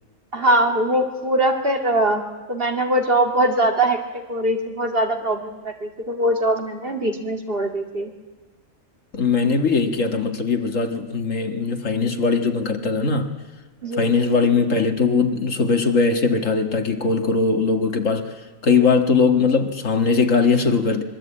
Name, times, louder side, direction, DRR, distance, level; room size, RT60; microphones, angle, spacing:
voice 1, 0.3-2.2 2.5-4.0 4.3-8.1 13.8-14.1, right 1 dB, 45° right, 4 dB, 2.3 m, -21 dB
voice 2, 9.1-13.3 14.0-18.3 18.6-21.0, left 4 dB, 65° left, 6 dB, 2.1 m, -20 dB
24.5 x 22.5 x 8.7 m, 1.3 s
omnidirectional pair, 1.4 m